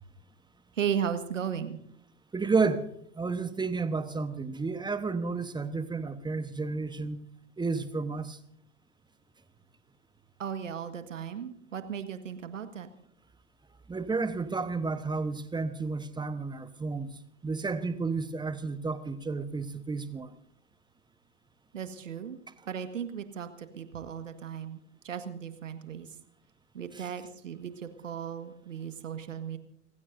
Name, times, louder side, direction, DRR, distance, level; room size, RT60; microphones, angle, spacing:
voice 1, 0.8-1.8 10.4-12.9 21.7-22.4 22.7-26.1 26.7-29.6, right 8 dB, 75° right, 1.8 m, -36 dB
voice 2, 2.3-2.9 3.1-7.2 7.6-8.4 13.9-17.1 17.4-20.4 26.9-27.0, right 4 dB, 10° right, 1.2 m, -31 dB
30.0 x 16.0 x 2.7 m
figure-of-eight pair, 85°, 38 cm